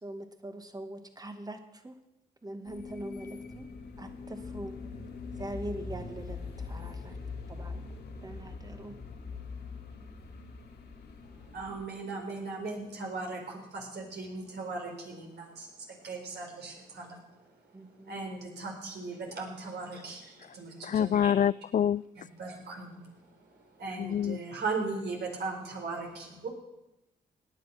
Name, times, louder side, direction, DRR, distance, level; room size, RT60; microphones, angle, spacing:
voice 1, 0.0-2.0 2.4-3.7 4.0-4.7 5.4-7.2 7.5-7.8 8.2-8.9 17.7-18.2, right 1 dB, 20° right, 2.0 m, -42 dB
sound 1, 2.6-11.8, left 4 dB, 65° left, 2.6 m, -42 dB
voice 2, 11.5-17.5 17.9-21.4 22.4-26.5, right 3 dB, 70° right, 4.5 m, -38 dB
voice 3, 20.8-22.0 24.0-24.4, left 9 dB, 45° left, 0.4 m, -26 dB
17.5 x 9.6 x 6.0 m
supercardioid pair, 50°, 18 cm